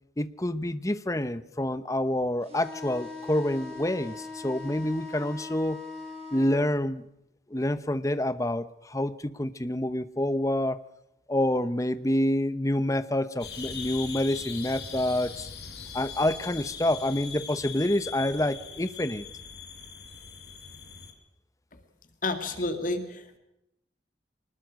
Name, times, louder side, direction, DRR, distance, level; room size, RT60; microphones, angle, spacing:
voice 1, 0.2-5.8 6.3-7.0 7.5-10.8 11.3-15.5 15.9-19.2, left 1 dB, 20° left, 14 dB, 0.9 m, -27 dB
sound 1, 2.4-6.6, left 3 dB, 35° right, 6.9 m, -41 dB
sound 2, 13.4-21.1, left 6 dB, 70° left, 4.8 m, -41 dB
voice 2, 22.2-23.4, left 2 dB, 45° left, 8 dB, 2.0 m, -30 dB
24.5 x 20.0 x 6.4 m, 0.84 s
head